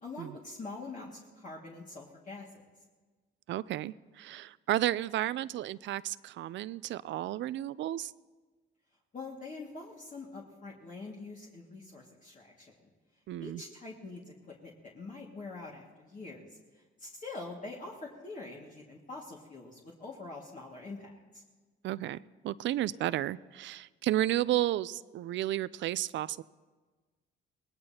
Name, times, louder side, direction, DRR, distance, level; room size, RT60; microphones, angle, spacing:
voice 1, 0.0-2.6 9.1-12.9 13.4-14.2 14.5-16.5 17.0-21.4, left 3 dB, 40° left, -3 dB, 2.0 m, -44 dB
voice 2, 3.5-8.1 13.3-13.6 21.8-22.2 22.4-26.4, right 14 dB, 70° right, 18 dB, 0.4 m, -32 dB
23.0 x 19.0 x 2.8 m, 1.4 s
cardioid pair, 90°, 20 cm